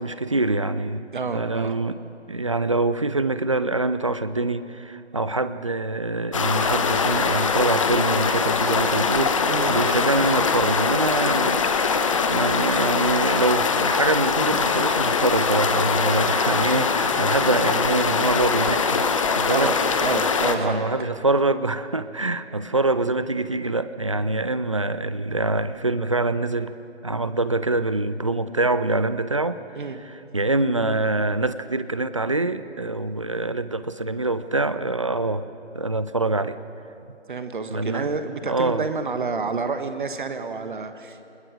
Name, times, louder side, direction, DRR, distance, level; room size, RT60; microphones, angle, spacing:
voice 1, 0.0-1.1 1.3-2.0 2.3-19.0 19.3-19.7 20.6-26.7 27.0-29.6 30.3-35.5 35.7-36.6 37.7-38.1 38.4-38.9, right 2 dB, 30° right, 13 dB, 0.5 m, -25 dB
voice 2, 1.1-1.8 9.5-9.7 19.5-20.9 29.7-30.0 37.3-41.3, right 4 dB, 45° right, 8 dB, 1.4 m, -29 dB
sound 1, 6.3-20.6, left 5 dB, 30° left, 1.0 m, -22 dB
26.0 x 20.5 x 6.4 m, 2.7 s
figure-of-eight pair, 150°, 34 cm